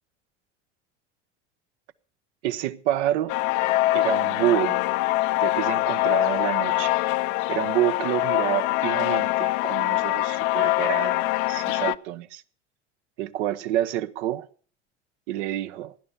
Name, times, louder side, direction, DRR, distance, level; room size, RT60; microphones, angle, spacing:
voice 1, 2.4-3.3 3.9-4.8 5.4-6.9 7.5-12.4 13.2-14.4 15.3-15.9, right 13 dB, 70° right, 1.0 m, -28 dB
sound 1, 3.3-11.9, left 18 dB, 65° left, 0.7 m, -24 dB
17.0 x 10.5 x 6.9 m
hypercardioid pair, 80°, 35 cm